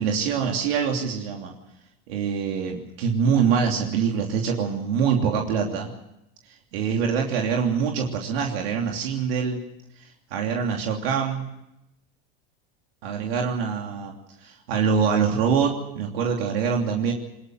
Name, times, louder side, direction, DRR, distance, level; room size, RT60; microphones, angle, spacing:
voice 1, 0.0-1.5 2.1-5.9 6.5-9.6 10.0-11.5 13.0-14.1 14.4-17.1, right 6 dB, 80° right, 1 dB, 3.1 m, -24 dB
21.5 x 20.5 x 7.8 m, 0.86 s
supercardioid pair, 100°, 30 cm